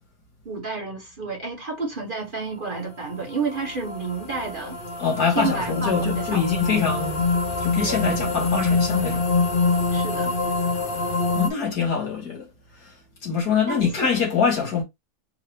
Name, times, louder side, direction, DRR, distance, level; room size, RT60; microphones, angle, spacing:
voice 1, 0.4-4.8 5.3-6.8 7.8-8.0 9.9-10.4 13.7-14.1, right 4 dB, 35° right, 1.0 m, -30 dB
sound 1, 3.0-11.5, left 3 dB, 45° left, 0.8 m, -25 dB
voice 2, 5.0-7.2 7.6-9.2 11.4-12.5 13.2-14.8, left 6 dB, 75° left, 2.4 m, -24 dB
4.8 x 2.7 x 3.1 m
omnidirectional pair, 1.7 m